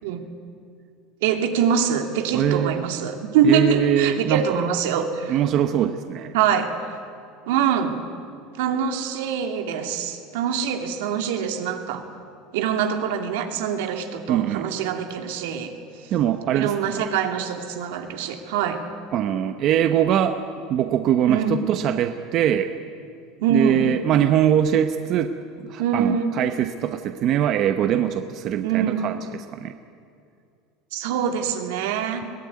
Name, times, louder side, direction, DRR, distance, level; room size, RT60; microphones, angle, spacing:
voice 1, 1.2-5.4 6.3-6.7 7.5-8.0 8.6-12.1 12.5-15.7 16.0-16.1 16.5-18.8 21.3-21.6 23.4-23.8 25.8-26.4 28.6-29.1 30.9-32.3, right 7 dB, 80° right, 5 dB, 2.6 m, -24 dB
voice 2, 2.3-2.8 3.4-4.6 5.3-6.3 14.3-14.7 16.1-17.1 19.1-20.4 20.7-22.7 23.5-25.3 25.6-29.8, right 10 dB, 40° right, 8 dB, 0.9 m, -22 dB
22.0 x 17.5 x 9.6 m, 2.4 s
cardioid pair, 165°, 0 cm